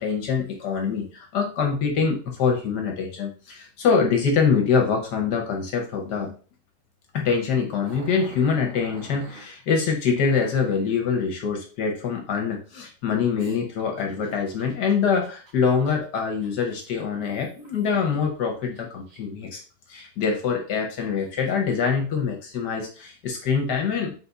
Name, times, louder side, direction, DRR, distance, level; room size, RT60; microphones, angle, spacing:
voice 1, 0.0-6.3 7.1-19.6 19.9-24.1, left 6 dB, 65° left, 3 dB, 1.2 m, -24 dB
Growling, 7.8-9.5 10.2-10.8 13.4-18.2 18.6-19.4 20.0-20.1 20.7-21.7, right 3 dB, 75° right, 1.9 m, -47 dB
4.0 x 4.0 x 2.3 m, 0.37 s
omnidirectional pair, 2.2 m